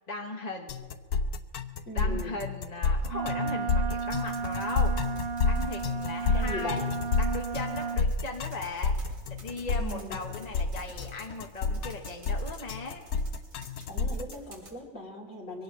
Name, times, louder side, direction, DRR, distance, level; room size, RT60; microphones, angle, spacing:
voice 1, 0.1-0.8 1.9-4.9 5.4-6.8 7.2-8.9 9.2-13.0, left 2 dB, 30° left, 1 dB, 1.2 m, -38 dB
sound 1, 0.7-14.3, left 3 dB, 85° left, 1.2 m, -29 dB
voice 2, 1.8-2.4 6.3-6.9 9.6-10.2 13.9-15.6, left 1 dB, 55° left, -3 dB, 3.4 m, -39 dB
Wind instrument woodwind instrument, 3.1-8.0, right 5 dB, 50° right, 1.0 m, -34 dB
sound 2, 4.0-14.7, equal, 90° right, 3.7 m, -50 dB
23.5 x 18.0 x 3.1 m, 1.4 s
omnidirectional pair, 1.5 m